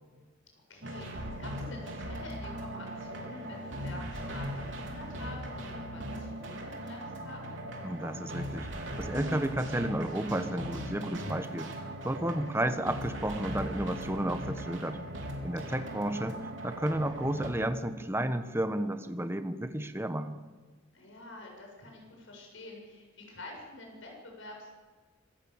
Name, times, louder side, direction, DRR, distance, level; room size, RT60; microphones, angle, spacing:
voice 1, 0.7-7.6 15.6-16.0 20.9-24.7, left 2 dB, 80° left, 1 dB, 7.5 m, -48 dB
sound 1, 0.8-17.5, right 1 dB, 70° right, 4.0 m, -39 dB
voice 2, 7.8-11.7 12.0-15.0 15.4-20.4, right 1 dB, 15° right, 9 dB, 1.2 m, -32 dB
26.0 x 15.0 x 7.3 m, 1.4 s
head